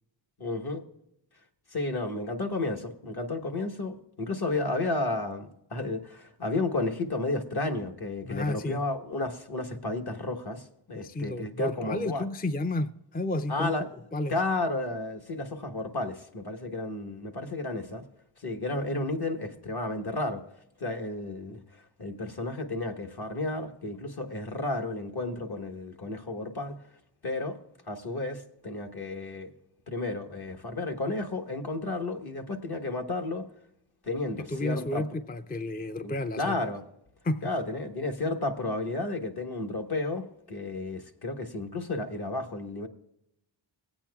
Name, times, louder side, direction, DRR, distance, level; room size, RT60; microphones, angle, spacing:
voice 1, 0.4-0.8 1.7-12.3 13.5-13.9 14.3-18.0 18.4-20.4 20.8-21.6 22.0-26.8 27.2-27.6 27.9-29.5 29.9-33.4 34.0-35.0 36.0-36.8 37.4-42.9, left 2 dB, 50° left, 1.3 m, -32 dB
voice 2, 8.2-8.8 10.9-13.7 14.1-14.4 34.5-36.5 37.2-37.5, left 1 dB, 20° left, 0.5 m, -31 dB
18.5 x 8.8 x 2.3 m
wide cardioid pair, 55°, 47 cm